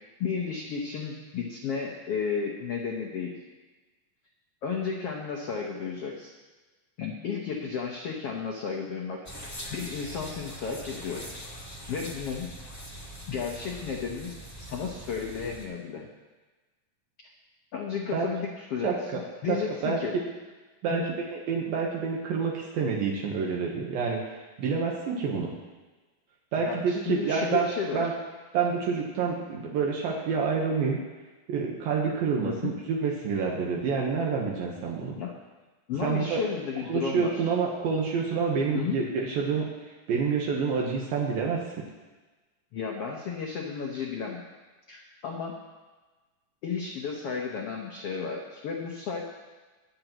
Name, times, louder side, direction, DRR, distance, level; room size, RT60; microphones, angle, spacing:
voice 1, 0.2-3.3 4.6-6.3 7.0-11.2 11.9-12.5 13.3-16.1 17.7-20.1 20.9-21.0 26.6-28.0 32.4-32.7 35.2-35.3 35.9-37.4 38.7-39.0 42.7-44.4 44.9-45.6 46.6-49.2, left 6 dB, 75° left, 0 dB, 1.4 m, -33 dB
sound 1, 9.2-15.6, equal, 10° left, 0.8 m, -42 dB
voice 2, 21.5-25.5 26.5-27.7 27.9-28.1 28.5-31.0 31.5-35.2 36.0-36.4 36.9-39.7 40.1-41.6, right 5 dB, 80° right, -2 dB, 2.9 m, -28 dB
23.0 x 7.9 x 3.0 m, 1.3 s
omnidirectional pair, 4.1 m